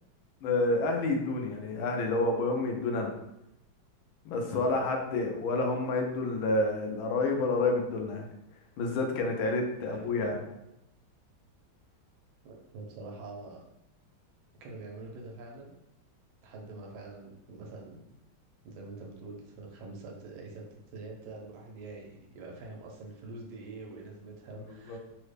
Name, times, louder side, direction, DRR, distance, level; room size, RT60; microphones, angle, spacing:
voice 1, 0.4-3.1 4.2-8.2 8.8-10.4 24.5-25.0, left 2 dB, 85° left, 3 dB, 1.4 m, -29 dB
voice 2, 4.5-4.8 9.7-10.4 12.4-13.6 14.6-15.7 16.4-18.0 18.6-20.6 20.9-25.0, right 3 dB, 90° right, 1 dB, 1.5 m, -45 dB
3.8 x 2.1 x 3.2 m, 0.85 s
omnidirectional pair, 2.2 m